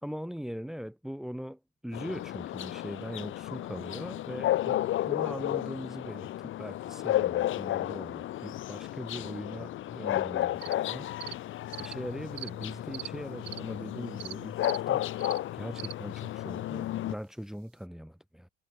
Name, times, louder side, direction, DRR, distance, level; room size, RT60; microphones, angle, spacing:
voice 1, 0.0-11.1 11.8-15.1 15.5-18.5, equal, ahead, 2.1 m, -41 dB
sound 1, 1.9-17.1, left 14 dB, 35° left, 0.6 m, -33 dB
sound 2, 10.6-10.7 11.2-11.3 11.7-11.9 12.4-12.5 12.9-13.1 13.4-13.6 14.2-14.3 14.6-14.8 15.2-15.4 15.8-15.9, right 16 dB, 90° right, 3.0 m, -40 dB
sound 3, 12.2-15.8 16.2-16.3 17.4-17.5, left 13 dB, 50° left, 5.5 m, -62 dB
supercardioid pair, 100°, 37 cm